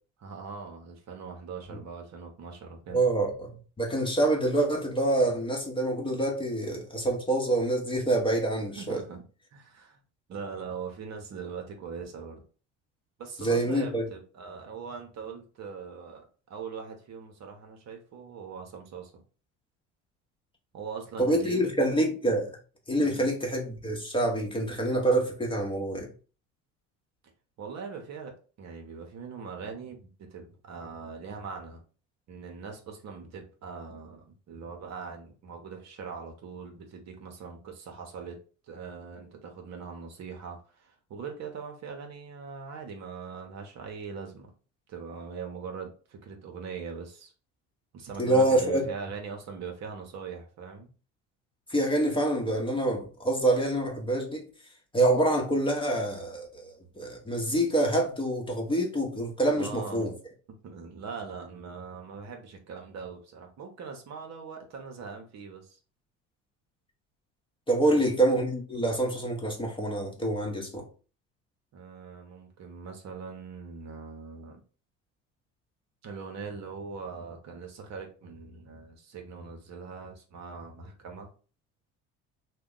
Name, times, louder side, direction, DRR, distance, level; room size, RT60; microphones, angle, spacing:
voice 1, 0.2-3.1 8.7-10.0 10.3-12.4 13.2-19.1 20.7-21.8 23.0-23.3 27.6-28.3 28.6-31.8 32.3-38.4 38.7-44.5 44.9-47.3 47.9-50.9 59.5-60.2 60.6-65.8 67.8-68.1 71.7-74.6 76.0-81.3, right 5 dB, 50° right, 0.9 m, -41 dB
voice 2, 2.9-9.0 13.4-14.0 21.2-22.5 22.9-26.1 48.2-48.9 51.7-54.4 54.9-60.1 67.7-70.8, right 1 dB, 15° left, 0.9 m, -26 dB
2.7 x 2.2 x 3.8 m
supercardioid pair, 80°, 35 cm